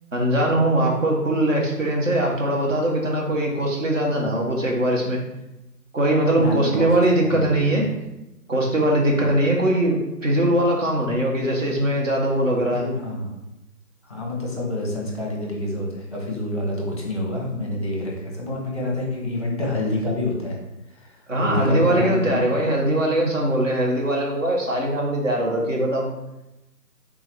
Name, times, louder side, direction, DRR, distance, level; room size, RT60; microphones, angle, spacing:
voice 1, 0.1-5.2 5.9-7.9 8.5-12.9 21.3-26.1, right 1 dB, 50° right, -1 dB, 1.3 m, -21 dB
voice 2, 6.3-7.7 9.1-9.3 12.6-13.3 14.0-20.6 20.9-22.5, left 1 dB, 20° left, -2 dB, 0.9 m, -28 dB
3.8 x 2.8 x 4.6 m, 0.94 s
figure-of-eight pair, 170°, 48 cm